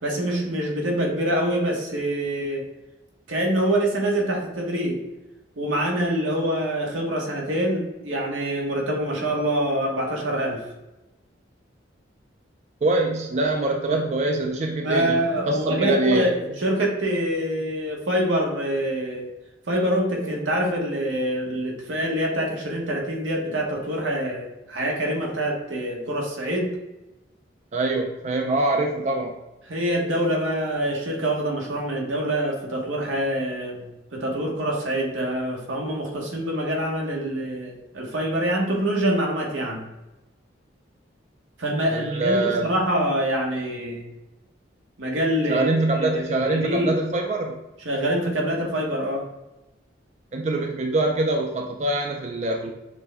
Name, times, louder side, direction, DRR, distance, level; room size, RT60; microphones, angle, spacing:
voice 1, 0.0-2.6 3.3-5.0 5.6-10.6 13.9-14.0 14.8-19.3 19.7-26.7 29.7-39.8 41.6-44.1 45.0-46.9 47.8-49.3, right 1 dB, 90° right, -1 dB, 1.1 m, -25 dB
voice 2, 12.8-16.3 27.7-29.3 41.9-42.7 45.5-47.6 50.3-52.7, right 2 dB, 35° right, 2 dB, 0.3 m, -24 dB
5.9 x 2.1 x 3.4 m, 1.0 s
head